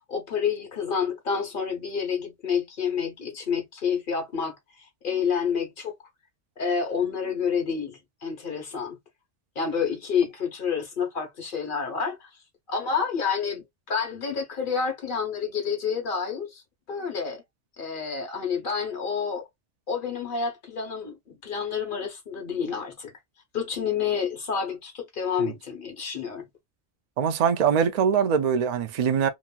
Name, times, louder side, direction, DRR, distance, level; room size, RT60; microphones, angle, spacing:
voice 1, 0.1-5.9 6.6-9.0 9.5-12.3 12.7-16.6 16.9-17.4 17.8-19.5 19.9-23.1 23.5-26.5, left 6 dB, 50° left, 1.1 m, -29 dB
voice 2, 27.2-29.3, right 7 dB, 55° right, 0.5 m, -23 dB
2.9 x 2.6 x 2.2 m
omnidirectional pair, 1.2 m